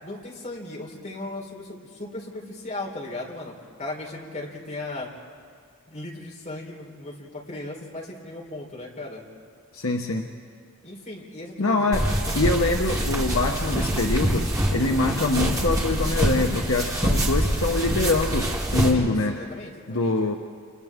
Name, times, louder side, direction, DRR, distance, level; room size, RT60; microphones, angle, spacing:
voice 1, 0.0-5.1 5.9-9.2 10.8-12.0 18.9-20.3, left 2 dB, 35° left, -2 dB, 4.0 m, -37 dB
voice 2, 9.7-10.3 11.6-12.1 12.3-19.4 19.9-20.4, left 2 dB, 70° left, 2 dB, 1.1 m, -24 dB
sound 1, 11.9-18.9, right 1 dB, 15° right, 2.7 m, -25 dB
29.5 x 29.0 x 3.7 m, 2.1 s
head